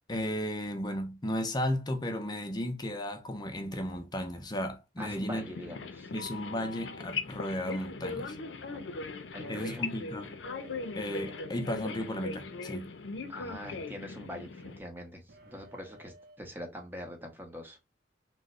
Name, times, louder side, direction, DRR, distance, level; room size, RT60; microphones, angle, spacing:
voice 1, 0.1-5.4 6.1-8.4 9.5-10.4 11.0-12.9, left 1 dB, 25° left, 0.5 m, -34 dB
voice 2, 5.0-6.1 8.7-9.1 9.3-9.9 13.3-17.8, equal, 10° right, 0.8 m, -44 dB
sound 1, 5.3-14.8, left 4 dB, 75° left, 0.5 m, -39 dB
sound 2, 10.4-13.4 15.3-16.4, right 1 dB, 55° right, 0.6 m, -56 dB
3.1 x 2.1 x 3.6 m
head